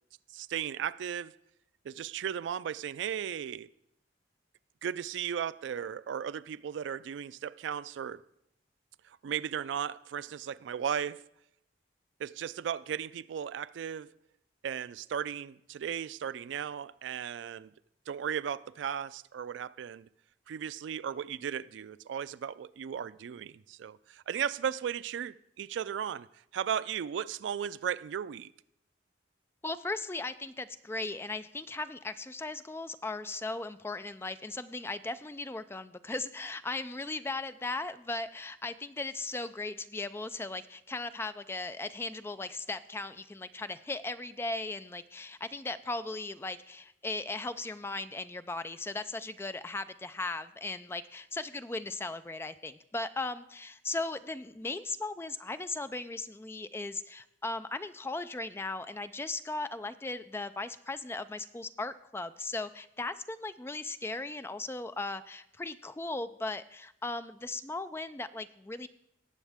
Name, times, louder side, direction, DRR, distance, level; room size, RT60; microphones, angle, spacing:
voice 1, 0.3-1.3 1.8-3.7 4.8-8.2 9.0-11.2 12.2-14.1 14.6-17.7 18.1-20.1 20.5-26.3 26.5-28.5, right 8 dB, 75° right, 0.3 m, -36 dB
voice 2, 29.6-68.9, left 2 dB, 15° left, 0.3 m, -37 dB
18.5 x 7.3 x 3.5 m
head